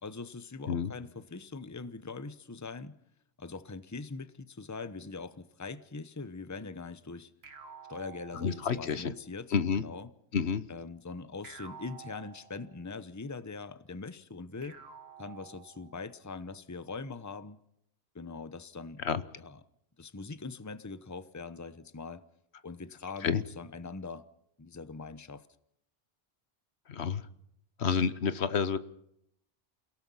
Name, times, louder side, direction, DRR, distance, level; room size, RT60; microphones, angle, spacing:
voice 1, 0.0-3.0 3.4-7.3 7.9-10.1 10.7-14.8 15.2-17.6 18.1-19.0 19.4-19.6 20.0-22.2 22.6-24.3 24.6-25.5, left 4 dB, 20° left, 0.9 m, -42 dB
sound 1, 7.4-9.1 11.4-13.0 14.6-16.1, right 6 dB, 70° right, 1.7 m, -51 dB
voice 2, 8.4-9.1 9.5-9.8 10.3-10.6 19.0-19.2 23.2-23.4 26.9-27.2 27.8-28.8, left 6 dB, 80° left, 1.3 m, -29 dB
29.0 x 17.5 x 5.6 m
omnidirectional pair, 1.1 m